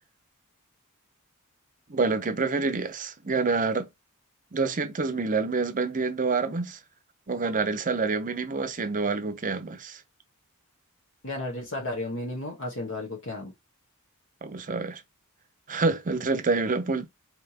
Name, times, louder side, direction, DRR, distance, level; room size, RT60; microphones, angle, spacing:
voice 1, 1.9-3.9 4.5-6.8 7.3-10.0 14.4-15.0 15.7-17.1, right 4 dB, 35° right, 0.7 m, -27 dB
voice 2, 11.2-13.5, left 2 dB, 60° left, 1.2 m, -33 dB
4.4 x 3.3 x 2.8 m
head